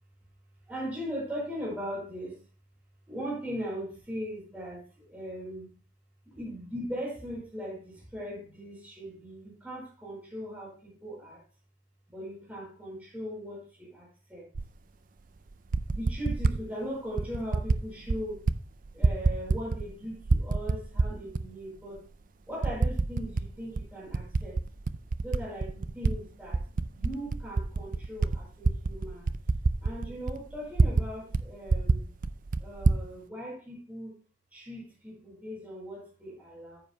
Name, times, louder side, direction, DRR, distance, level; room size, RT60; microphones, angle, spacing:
voice 1, 0.7-2.4 3.1-5.7 6.3-11.4 12.1-14.4 15.9-18.4 18.9-22.0 22.5-24.6 25.2-26.6 26.9-29.3 29.8-32.1 32.6-34.1 34.5-36.8, equal, 5° right, -5 dB, 5.0 m, -39 dB
Typing, 14.5-14.7 15.5-16.6 17.2-17.8 18.1-18.6 18.8-19.9 20.2-21.4 22.0-22.1 22.6-23.5 23.8-26.1 26.5-31.1 31.3-31.4 31.7-33.0, right 3 dB, 40° right, 0.4 m, -26 dB
14.5 x 8.0 x 2.2 m, 0.37 s
head